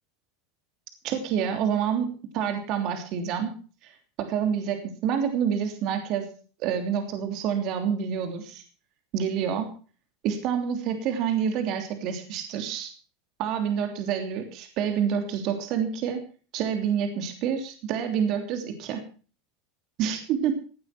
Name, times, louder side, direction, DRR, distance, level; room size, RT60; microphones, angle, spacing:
voice 1, 1.0-3.5 3.8-6.3 6.6-8.6 9.1-9.7 10.2-12.9 13.4-16.2 16.5-19.0 20.0-20.5, right 8 dB, 55° right, 6 dB, 3.0 m, -28 dB
17.0 x 9.4 x 5.9 m, 0.39 s
hypercardioid pair, 100°, 0 cm